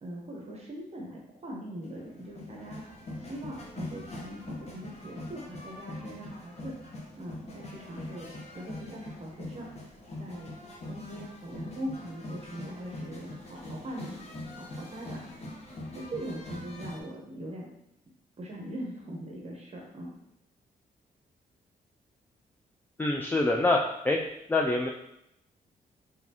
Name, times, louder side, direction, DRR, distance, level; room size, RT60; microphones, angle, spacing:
voice 1, 0.0-2.8 3.2-6.7 7.2-8.3 8.5-9.7 10.2-10.5 10.8-14.1 14.6-15.2 15.9-17.7 18.4-20.1, right 1 dB, 40° right, -2 dB, 1.0 m, -41 dB
sound 1, 1.8-17.0, left 1 dB, 40° left, 1.0 m, -43 dB
voice 2, 23.0-23.8 24.0-24.2 24.5-24.9, left 2 dB, 10° left, 0 dB, 0.4 m, -25 dB
4.0 x 3.3 x 2.9 m, 0.81 s
cardioid pair, 90°, 16 cm